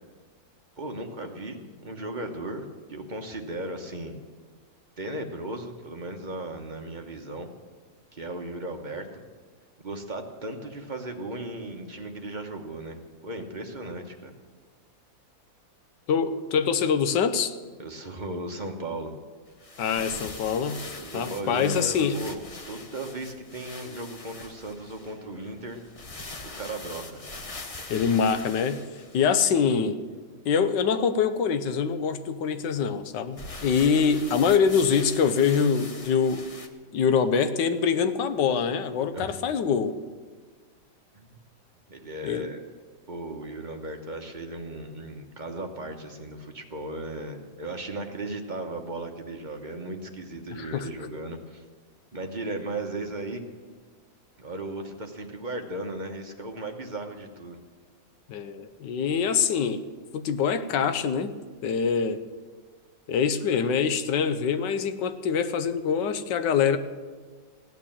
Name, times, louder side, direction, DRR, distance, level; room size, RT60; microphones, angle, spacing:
voice 1, 0.8-4.2 5.0-7.5 8.1-9.2 9.8-14.3 17.8-19.1 21.0-22.4 22.7-25.8 26.5-27.2 39.1-39.3 41.1-41.3 41.9-42.6 43.1-51.6 52.1-53.4 54.4-57.6, right 2 dB, 30° right, 3 dB, 0.9 m, -36 dB
voice 2, 16.1-17.6 19.8-20.8 21.1-22.2 27.9-28.8 29.1-30.0 30.4-36.4 36.9-40.0 42.2-42.5 50.5-50.9 58.3-59.9 60.1-61.3 61.6-62.2 63.1-66.8, left 6 dB, 70° left, 10 dB, 1.4 m, -24 dB
sound 1, 19.5-29.6 33.3-36.7, left 3 dB, 45° left, 0.4 m, -42 dB
16.5 x 9.2 x 7.4 m, 1.5 s
omnidirectional pair, 2.1 m